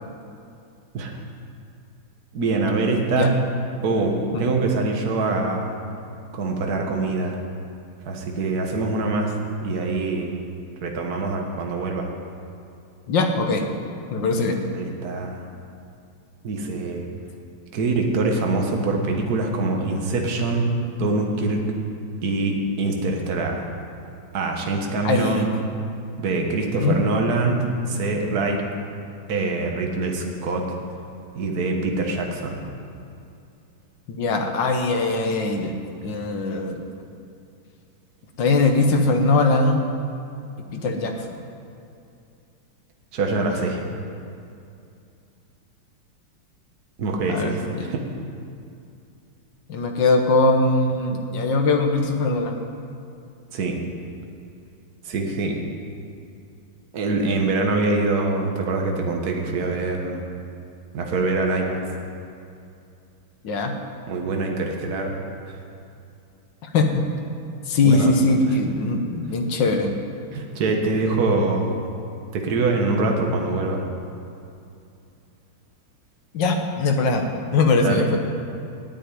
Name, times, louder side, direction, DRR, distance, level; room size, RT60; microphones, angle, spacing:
voice 1, 2.3-3.4 3.8-5.7 6.3-7.4 8.0-9.3 9.6-10.4 10.8-12.1 14.7-15.4 16.4-17.1 17.7-20.7 21.0-21.6 22.2-23.7 24.3-25.5 26.2-28.6 29.3-30.7 31.3-32.6 43.1-43.8 47.0-48.1 53.5-53.8 55.0-55.6 56.9-60.2 60.9-61.8 64.1-65.2 65.5-65.6 67.8-68.4 70.3-71.9 72.3-73.8 77.8-78.0, right 3 dB, 50° right, 2 dB, 1.7 m, -24 dB
voice 2, 13.1-13.7 14.1-14.6 25.0-25.5 26.8-27.0 34.1-35.7 36.0-36.8 38.4-39.8 40.7-41.1 47.3-47.9 49.7-52.6 63.4-63.7 66.6-66.9 67.7-69.9 76.3-77.2 77.5-78.2, left 3 dB, 65° left, 4 dB, 1.8 m, -21 dB
9.7 x 9.2 x 9.3 m, 2.5 s
omnidirectional pair, 2.3 m